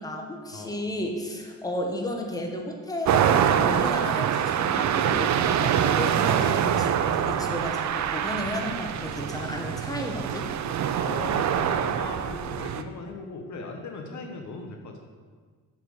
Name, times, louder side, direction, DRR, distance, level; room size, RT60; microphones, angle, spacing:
voice 1, 0.0-10.5, left 1 dB, 10° left, 1 dB, 1.3 m, -33 dB
sound 1, 3.1-12.8, right 9 dB, 55° right, 0.6 m, -25 dB
voice 2, 11.0-15.0, left 3 dB, 55° left, 3 dB, 1.2 m, -38 dB
6.6 x 5.9 x 6.4 m, 1.5 s
cardioid pair, 80°, 33 cm